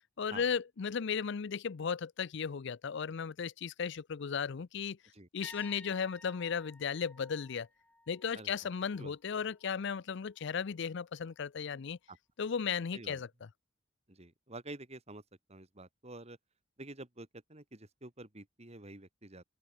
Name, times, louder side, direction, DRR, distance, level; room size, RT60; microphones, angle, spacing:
voice 1, 0.2-5.0 5.3-7.7 8.1-12.0 12.4-13.3, left 6 dB, 65° left, 0.5 m, -35 dB
sound 1, 5.4-9.2 9.5-9.8 12.7-12.8, left 1 dB, 5° left, 2.6 m, -56 dB
voice 2, 8.3-8.7 9.0-9.1 12.1-12.2 12.9-13.2 14.1-15.2 15.5-16.4 16.8-19.4, right 2 dB, 35° right, 2.6 m, -49 dB
head